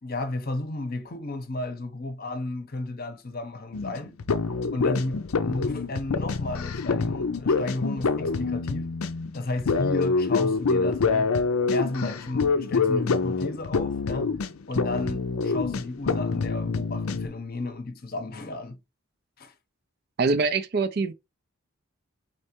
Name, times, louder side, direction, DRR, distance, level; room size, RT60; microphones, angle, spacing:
voice 1, 0.0-4.1 4.7-8.9 9.3-11.3 11.7-14.3 14.7-18.8 19.4-19.5, left 2 dB, 45° left, 0.7 m, -33 dB
sound 1, 3.7-17.3, left 4 dB, 80° left, 0.5 m, -26 dB
voice 2, 20.2-21.1, right 4 dB, 45° right, 0.4 m, -24 dB
4.3 x 3.3 x 2.9 m
head